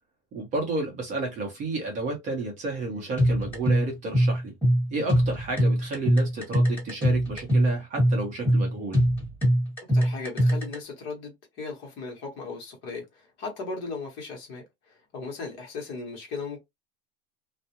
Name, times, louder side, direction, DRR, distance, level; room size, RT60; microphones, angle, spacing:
voice 1, 0.3-4.5 4.9-9.0, right 3 dB, 25° right, 0.7 m, -31 dB
sound 1, 3.2-10.8, equal, 5° left, 1.4 m, -22 dB
voice 2, 9.9-16.6, left 4 dB, 40° left, 0.9 m, -37 dB
2.3 x 2.0 x 2.8 m
supercardioid pair, 170°, 29 cm